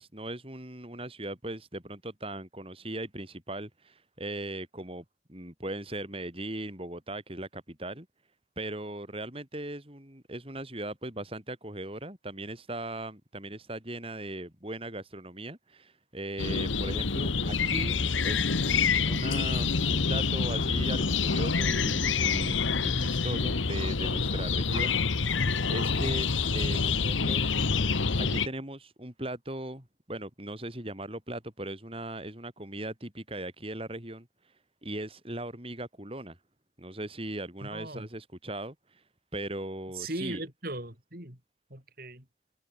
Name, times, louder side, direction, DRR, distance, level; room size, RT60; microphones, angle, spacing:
voice 1, 0.0-5.0 5.3-8.1 8.6-18.0 18.2-25.4 25.7-26.3 26.5-27.5 28.2-34.5 34.8-36.4 36.8-39.0 39.3-40.4, right 1 dB, 30° right, 4.7 m, -38 dB
sound 1, 16.4-28.5, left 5 dB, 90° left, 1.3 m, -27 dB
voice 2, 37.6-38.1 39.9-41.4 41.7-42.2, right 2 dB, 50° right, 6.0 m, -38 dB
open air
head